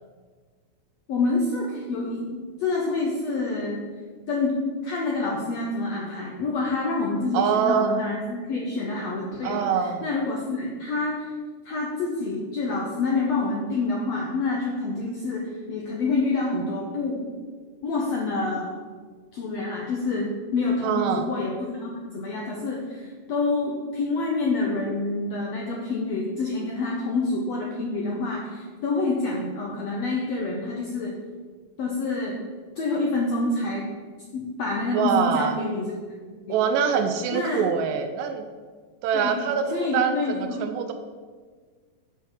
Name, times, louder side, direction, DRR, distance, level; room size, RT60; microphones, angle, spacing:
voice 1, 1.1-2.2 2.6-3.8 4.3-9.7 10.0-11.3 11.6-17.3 17.8-18.8 19.3-31.1 31.8-32.4 32.8-33.9 34.3-35.9 36.5-36.6 37.3-37.7 39.1-39.4 39.7-40.6, left 3 dB, 75° left, -2 dB, 1.5 m, -27 dB
voice 2, 7.3-7.9 9.4-10.0 20.8-21.3 34.9-35.6 36.5-38.5 39.0-40.9, right 7 dB, 80° right, 7 dB, 2.0 m, -24 dB
8.2 x 4.4 x 6.2 m, 1.5 s
omnidirectional pair, 4.1 m